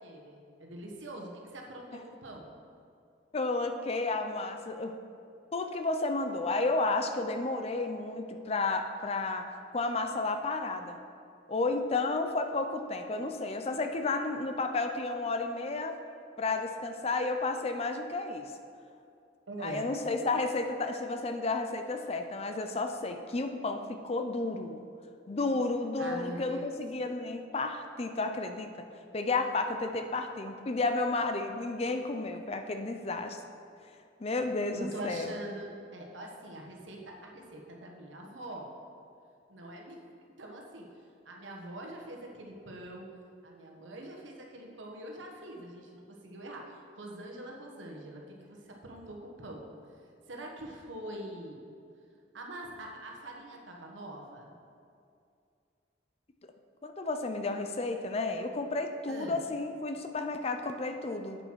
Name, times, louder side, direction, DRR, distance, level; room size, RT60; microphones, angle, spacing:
voice 1, 0.0-2.5 19.5-19.9 26.0-26.8 34.7-38.7 39.5-40.0 40.4-43.0 43.4-51.6 52.3-54.6 59.1-59.5, right 1 dB, 90° right, 0 dB, 1.3 m, -44 dB
voice 2, 3.3-4.9 5.5-11.0 11.5-16.0 16.4-18.5 19.6-24.8 25.3-28.9 29.1-33.4 34.2-35.3 56.8-61.4, left 3 dB, 35° left, 6 dB, 0.5 m, -32 dB
8.0 x 7.3 x 4.6 m, 2.5 s
head